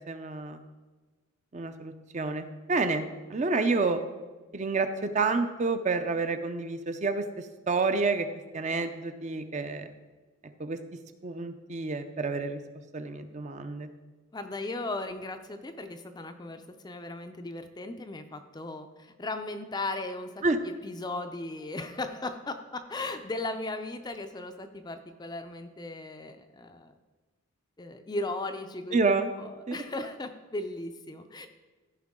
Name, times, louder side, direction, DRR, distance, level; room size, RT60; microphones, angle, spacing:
voice 1, 0.1-0.6 1.5-3.0 3.3-4.0 4.5-8.3 8.5-9.9 10.6-10.8 11.2-12.6 12.9-13.9 20.4-20.6 28.9-29.3 29.7-29.8, right 3 dB, 35° right, 8 dB, 0.5 m, -29 dB
voice 2, 14.3-20.4 20.8-26.9 27.8-29.0 29.4-31.5, left 2 dB, 20° left, 7 dB, 0.4 m, -37 dB
14.5 x 5.6 x 3.6 m, 1.3 s
head